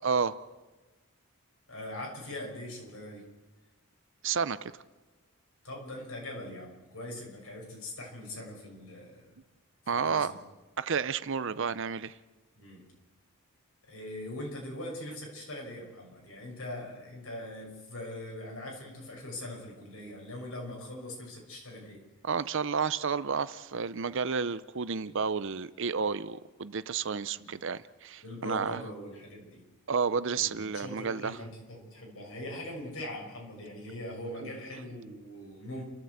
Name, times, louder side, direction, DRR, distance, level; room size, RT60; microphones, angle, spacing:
voice 1, 0.0-0.3 4.2-4.7 9.9-10.3 10.8-12.1 22.2-28.8 29.9-31.4, right 5 dB, 55° right, 0.6 m, -31 dB
voice 2, 1.7-3.3 5.6-9.3 9.9-10.4 12.6-12.8 13.9-22.0 27.3-27.5 28.2-29.6 30.3-35.8, left 1 dB, 65° left, 6.4 m, -41 dB
30.0 x 13.0 x 8.0 m
head